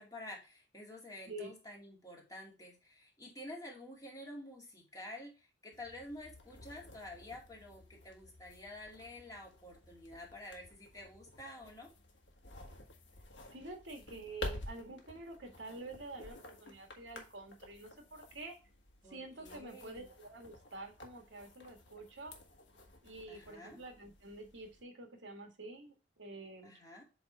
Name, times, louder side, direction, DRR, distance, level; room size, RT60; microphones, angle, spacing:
voice 1, 0.0-11.9 19.0-20.1 23.3-23.8 26.6-27.0, left 1 dB, 20° left, -2 dB, 2.2 m, -50 dB
sound 1, 5.7-24.8, left 2 dB, 75° left, 1.5 m, -51 dB
voice 2, 13.5-18.6 19.0-22.3 23.0-26.7, right 2 dB, 90° right, 4 dB, 1.8 m, -48 dB
7.8 x 3.6 x 4.2 m, 0.30 s
head